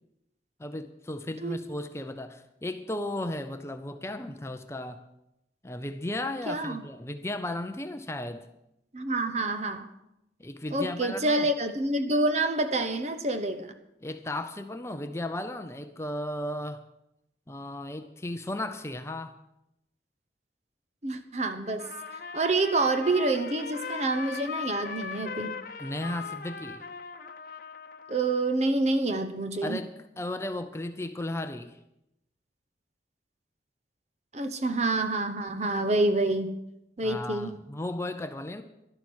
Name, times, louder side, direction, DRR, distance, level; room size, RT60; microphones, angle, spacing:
voice 1, 0.6-5.0 5.6-8.5 10.4-11.5 14.0-16.9 17.5-19.4 25.8-26.8 29.6-31.8 37.0-38.6, left 1 dB, 15° left, 8 dB, 0.6 m, -35 dB
voice 2, 6.5-6.8 8.9-9.9 10.7-13.7 21.0-21.9 22.3-25.6 28.1-29.8 34.3-36.5 37.0-37.5, right 2 dB, 35° right, 9 dB, 0.9 m, -27 dB
Trumpet, 21.7-28.4, left 5 dB, 50° left, 0.9 m, -39 dB
12.0 x 11.5 x 6.2 m, 0.85 s
head